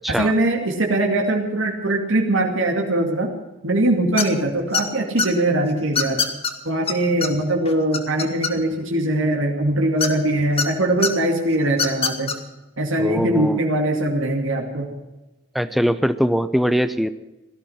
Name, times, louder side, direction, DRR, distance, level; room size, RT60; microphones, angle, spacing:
voice 1, 0.1-3.3 3.6-6.3 6.6-12.4 12.8-14.9, right 1 dB, 80° right, 1 dB, 2.4 m, -21 dB
sound 1, 4.2-4.4 4.7-5.3 5.9-6.5 6.9-7.0 7.2-7.3 7.6-8.8 10.0-10.7 11.0-11.1 11.7-12.3, left 5 dB, 30° left, 1.6 m, -22 dB
voice 2, 13.0-13.6 15.5-17.1, equal, ahead, 12 dB, 0.6 m, -21 dB
17.5 x 13.5 x 5.8 m, 1.0 s
head